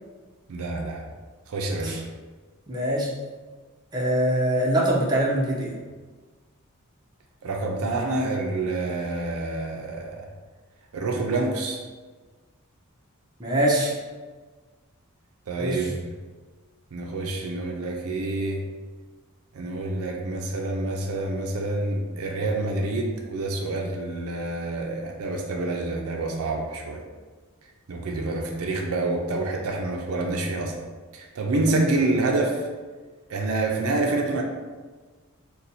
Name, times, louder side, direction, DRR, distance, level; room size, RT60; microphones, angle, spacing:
voice 1, 0.5-1.0 1.5-2.0 7.4-10.2 10.9-11.8 15.5-16.0 16.9-18.6 19.5-27.0 27.9-30.7 31.1-32.6 33.3-34.4, right 2 dB, 65° right, 1 dB, 0.4 m, -27 dB
voice 2, 2.7-3.1 3.9-5.8 13.4-13.9 15.6-15.9, right 1 dB, 20° right, -4 dB, 0.6 m, -23 dB
2.6 x 2.2 x 4.1 m, 1.4 s
head